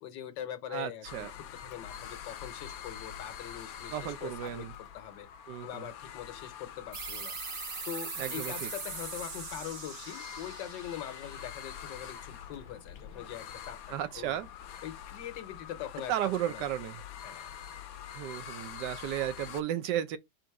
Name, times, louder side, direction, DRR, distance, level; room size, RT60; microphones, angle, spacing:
voice 1, 0.0-5.3 5.6-7.3 7.8-13.8 14.2-14.4 14.8-16.7 17.2-17.5, left 10 dB, 90° left, 1.5 m, -42 dB
voice 2, 0.7-1.3 3.9-4.7 5.5-5.9 8.2-8.7 13.9-14.5 16.1-17.0 18.2-20.2, right 11 dB, 80° right, 1.3 m, -34 dB
sound 1, 1.0-19.6, left 9 dB, 70° left, 0.9 m, -45 dB
sound 2, 6.9-12.2, right 5 dB, 45° right, 1.0 m, -41 dB
4.3 x 2.5 x 4.6 m
omnidirectional pair, 1.9 m